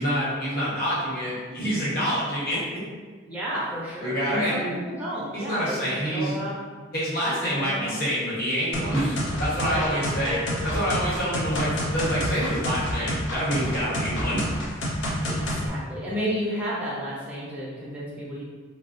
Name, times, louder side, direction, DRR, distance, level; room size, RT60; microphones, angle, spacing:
voice 1, 0.0-2.6 4.0-4.7 5.3-6.4 6.9-14.4, equal, 50° left, -8 dB, 1.0 m, -27 dB
voice 2, 3.3-6.6 7.3-8.0 9.6-10.7 15.0-18.4, equal, 5° right, -8 dB, 0.7 m, -32 dB
sound 1, 8.7-15.7, equal, 65° left, 0.5 m, -28 dB
3.9 x 2.1 x 2.6 m, 1.4 s
head